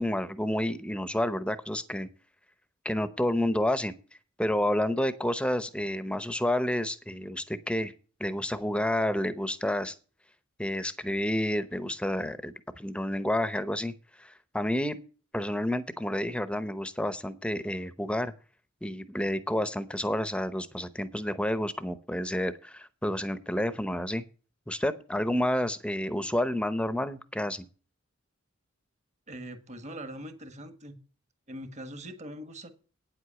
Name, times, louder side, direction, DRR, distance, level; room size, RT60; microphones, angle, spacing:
voice 1, 0.0-2.1 2.8-3.9 4.4-7.9 8.2-9.9 10.6-13.9 14.2-15.0 15.3-18.3 18.8-24.2 24.7-27.6, left 1 dB, 5° left, 13 dB, 0.8 m, -30 dB
voice 2, 29.3-31.0 31.5-32.7, right 1 dB, 35° right, 9 dB, 1.4 m, -42 dB
9.4 x 8.0 x 6.9 m, 0.38 s
head